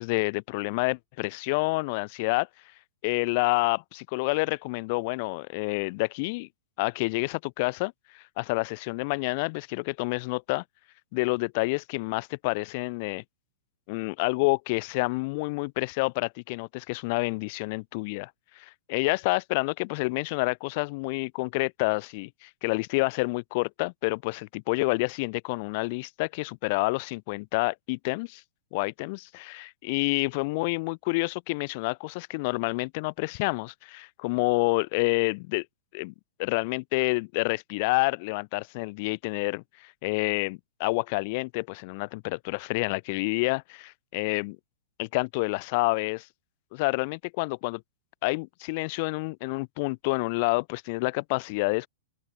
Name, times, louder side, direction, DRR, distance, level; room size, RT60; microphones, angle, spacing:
voice 1, 0.0-2.5 3.0-6.5 6.8-10.6 11.1-13.2 13.9-18.3 18.6-28.4 28.7-35.7 35.9-36.1 36.4-44.6 45.0-46.3 46.7-47.8 48.2-51.9, left 27 dB, 45° left, 2.1 m, -28 dB
open air
figure-of-eight pair, 105°, 0 cm